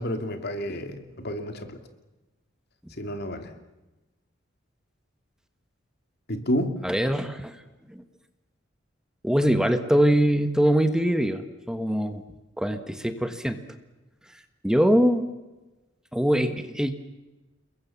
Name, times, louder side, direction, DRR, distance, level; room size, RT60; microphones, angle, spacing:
voice 1, 0.0-1.8 3.0-3.5 6.3-6.8, equal, 55° left, 7 dB, 2.7 m, -30 dB
voice 2, 6.8-7.6 7.9-8.0 9.2-12.2 12.6-13.6 14.6-15.2 16.1-16.9, equal, 5° right, 8 dB, 1.5 m, -23 dB
30.0 x 21.5 x 7.3 m, 1.1 s
head